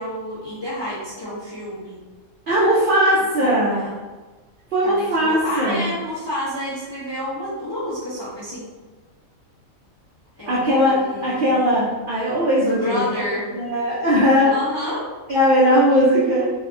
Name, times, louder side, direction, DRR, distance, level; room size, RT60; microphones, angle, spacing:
voice 1, 0.0-2.0 3.4-3.9 4.8-8.7 10.4-10.6 10.8-11.6 12.7-13.5 14.5-15.1, left 1 dB, 45° left, -10 dB, 0.3 m, -29 dB
voice 2, 2.5-3.8 4.7-5.9 10.5-13.1 13.5-14.5 15.3-16.5, equal, 70° right, -7 dB, 0.5 m, -18 dB
2.6 x 2.3 x 2.4 m, 1.3 s
omnidirectional pair, 1.5 m